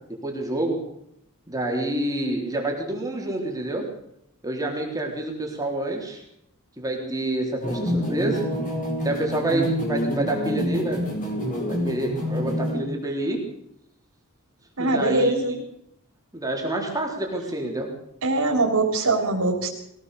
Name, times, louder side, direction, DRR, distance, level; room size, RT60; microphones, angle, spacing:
voice 1, 0.2-0.8 1.5-3.9 4.4-6.2 6.8-8.4 9.0-11.0 11.7-13.4 14.8-15.4 16.3-17.9, right 1 dB, 15° right, 0 dB, 3.8 m, -27 dB
sound 1, 7.6-12.8, equal, 40° left, 6.1 m, -27 dB
voice 2, 14.8-15.5 18.2-19.7, right 2 dB, 85° right, -2 dB, 3.7 m, -22 dB
23.0 x 16.5 x 6.8 m, 0.78 s
head